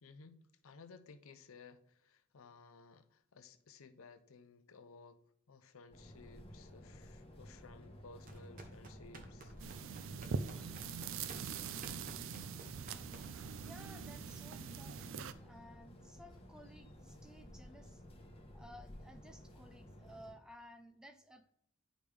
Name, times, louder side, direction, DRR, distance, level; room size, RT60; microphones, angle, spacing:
voice 1, 0.0-5.2 5.5-9.5, left 4 dB, 65° left, 0.6 m, -58 dB
sound 1, 5.9-20.3, equal, 25° left, 1.1 m, -55 dB
sound 2, 8.2-13.6, right 2 dB, 40° right, 0.9 m, -54 dB
sound 3, 9.6-15.3, right 6 dB, 60° right, 0.4 m, -43 dB
voice 2, 13.6-18.0 18.5-21.5, equal, 5° right, 0.4 m, -57 dB
10.5 x 5.0 x 3.3 m
head